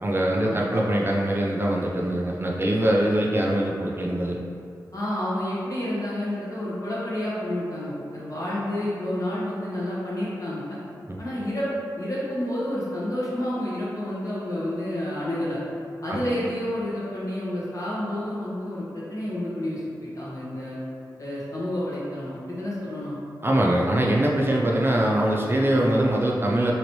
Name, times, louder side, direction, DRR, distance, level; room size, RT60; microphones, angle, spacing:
voice 1, 0.0-4.4 11.1-11.2 16.1-16.2 23.4-26.7, right 1 dB, 30° right, -2 dB, 0.4 m, -23 dB
voice 2, 4.9-10.8 11.2-11.7 12.0-15.6 16.0-20.8 21.2-23.1, left 1 dB, 50° left, -8 dB, 1.2 m, -29 dB
3.0 x 2.8 x 3.0 m, 2.5 s
cardioid pair, 45°, 8 cm